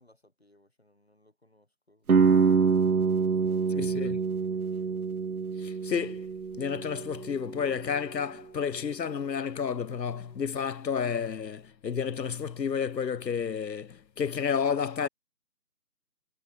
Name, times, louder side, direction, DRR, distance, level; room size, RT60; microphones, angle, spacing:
voice 1, 0.0-2.7 3.2-4.0 4.3-5.1, left 1 dB, 40° left, 4.3 m, -63 dB
sound 1, 2.1-7.9, right 5 dB, 65° right, 0.5 m, -26 dB
voice 2, 3.8-4.2 5.6-6.3 6.5-15.1, left 7 dB, 80° left, 0.7 m, -31 dB
figure-of-eight pair, 180°, 49 cm